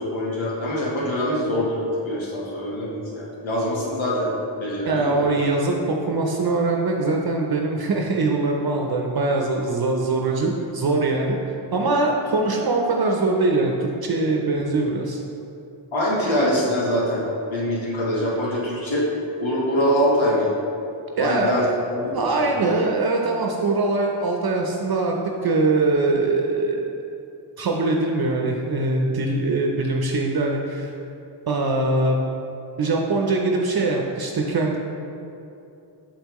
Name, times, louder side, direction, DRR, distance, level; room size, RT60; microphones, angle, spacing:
voice 1, 0.0-5.3 15.9-17.2 17.5-19.1 19.4-20.6 21.2-21.7 21.9-22.4, equal, 85° left, -5 dB, 1.4 m, -24 dB
voice 2, 4.8-15.2 21.2-21.7 22.1-25.1 25.4-26.9 27.6-30.9 31.5-32.2 32.8-34.8, right 3 dB, 55° right, 1 dB, 0.7 m, -22 dB
6.8 x 5.5 x 3.0 m, 2.8 s
cardioid pair, 55°, 46 cm